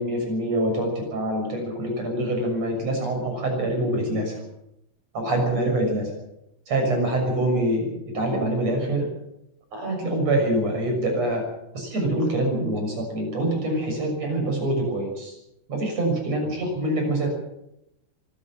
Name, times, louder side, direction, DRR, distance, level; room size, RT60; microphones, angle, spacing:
voice 1, 0.0-4.4 5.1-6.1 6.7-9.1 9.7-15.4 15.7-17.3, right 1 dB, 40° right, 3 dB, 7.6 m, -25 dB
24.0 x 14.5 x 7.6 m, 0.83 s
omnidirectional pair, 4.6 m